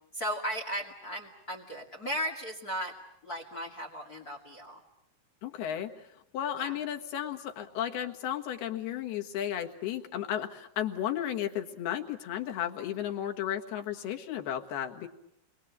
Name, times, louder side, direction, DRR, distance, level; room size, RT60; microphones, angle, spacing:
voice 1, 0.1-2.9 3.2-4.8 6.5-6.8, equal, 30° left, 2 dB, 2.2 m, -36 dB
voice 2, 5.4-15.1, left 10 dB, 90° left, 4 dB, 3.7 m, -34 dB
29.5 x 23.0 x 8.3 m, 0.79 s
omnidirectional pair, 4.4 m